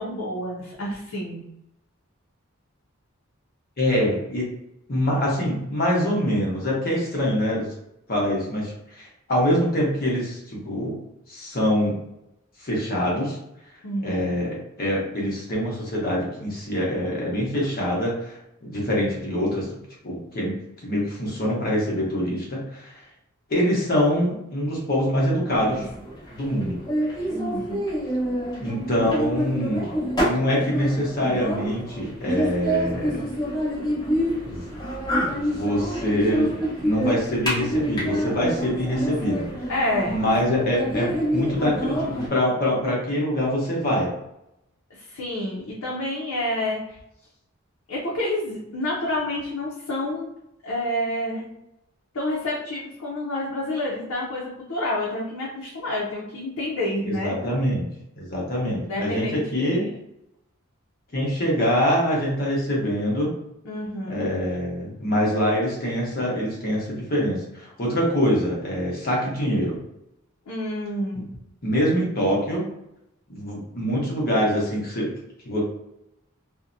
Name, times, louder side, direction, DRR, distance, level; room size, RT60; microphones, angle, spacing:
voice 1, 0.0-1.4 13.8-14.3 27.3-27.8 39.7-40.1 44.9-47.0 47.9-50.3 50.6-51.5 52.1-57.3 58.7-59.9 63.6-64.3 70.5-71.3, left 1 dB, 85° left, -5 dB, 0.6 m, -29 dB
voice 2, 3.8-4.5 4.9-7.7 8.1-11.0 11.3-12.0 12.6-13.4 14.0-19.7 20.0-20.5 20.8-23.0 23.5-25.9 26.3-26.8 28.6-29.8 30.2-33.3 34.4-34.7 35.5-36.5 36.8-39.7 40.0-44.1 57.0-57.9 58.1-59.8 61.1-63.3 64.1-69.8 71.6-72.7 73.3-75.1 75.4-75.6, equal, 45° left, -3 dB, 0.8 m, -24 dB
sound 1, 25.6-42.3, equal, 20° left, 0.9 m, -27 dB
2.6 x 2.1 x 2.5 m, 0.84 s
head